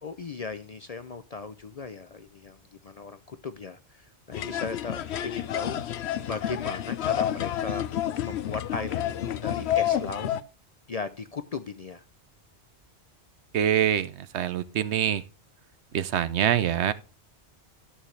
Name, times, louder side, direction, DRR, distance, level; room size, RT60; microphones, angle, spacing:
voice 1, 0.0-5.8 6.2-7.9 8.2-10.3 10.9-12.0, left 4 dB, 50° left, 0.5 m, -37 dB
sound 1, 4.3-10.4, left 10 dB, 75° left, 0.9 m, -29 dB
voice 2, 13.5-15.2 15.9-16.9, right 10 dB, 75° right, 1.0 m, -25 dB
13.0 x 6.3 x 3.2 m
omnidirectional pair, 1.2 m